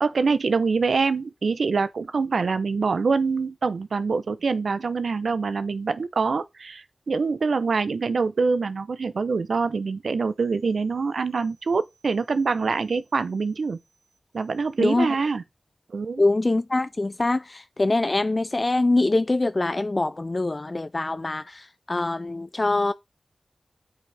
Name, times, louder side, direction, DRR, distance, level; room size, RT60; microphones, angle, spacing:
voice 1, 0.0-13.8 14.3-15.4 15.9-16.2, right 4 dB, 80° right, 0.6 m, -25 dB
voice 2, 14.8-15.1 16.2-22.9, left 2 dB, 40° left, 0.4 m, -24 dB
8.1 x 6.4 x 3.4 m
cardioid pair, 55°, 0 cm